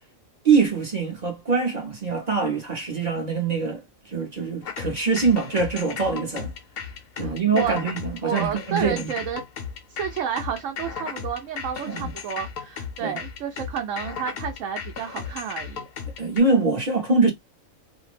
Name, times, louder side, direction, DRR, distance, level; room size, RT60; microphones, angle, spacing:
voice 1, 0.4-6.5 7.2-9.1 11.9-12.1 13.0-13.2 16.2-17.3, right 4 dB, 40° right, 0.7 m, -23 dB
sound 1, 4.6-16.4, left 7 dB, 65° left, 0.6 m, -35 dB
voice 2, 7.2-7.8 8.1-9.4 9.9-15.9, right 8 dB, 75° right, 0.9 m, -31 dB
2.6 x 2.1 x 3.2 m
omnidirectional pair, 1.4 m